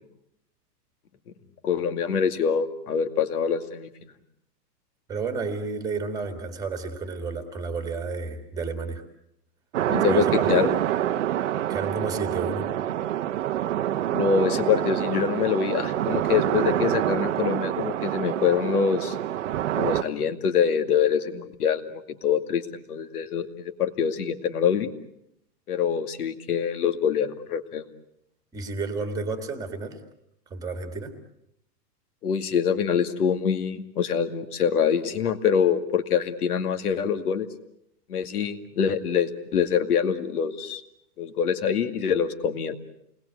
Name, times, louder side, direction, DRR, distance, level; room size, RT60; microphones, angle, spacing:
voice 1, 1.6-3.9 9.9-10.7 14.1-19.2 19.7-22.6 22.9-24.9 25.7-27.8 32.2-37.5 38.1-40.8 41.2-42.7, left 7 dB, 60° left, 8 dB, 2.4 m, -25 dB
voice 2, 5.1-9.0 10.1-10.7 11.7-12.7 28.5-30.0 30.5-31.1, right 4 dB, 5° right, 7 dB, 2.0 m, -31 dB
sound 1, 9.7-20.0, right 12 dB, 45° right, 0.9 m, -26 dB
29.5 x 20.5 x 8.2 m, 0.78 s
hypercardioid pair, 165°, 49 cm